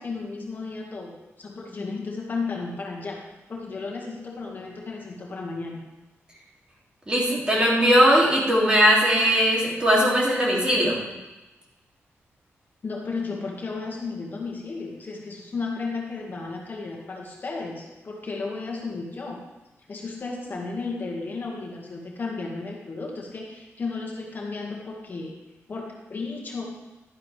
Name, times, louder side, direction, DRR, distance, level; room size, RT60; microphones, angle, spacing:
voice 1, 0.0-3.2 3.5-5.8 12.8-19.4 19.9-25.3 25.7-26.6, left 4 dB, 40° left, -2 dB, 1.9 m, -33 dB
voice 2, 7.1-11.0, equal, 20° right, -4 dB, 2.8 m, -19 dB
11.5 x 11.0 x 3.4 m, 1.1 s
wide cardioid pair, 140°, 5 cm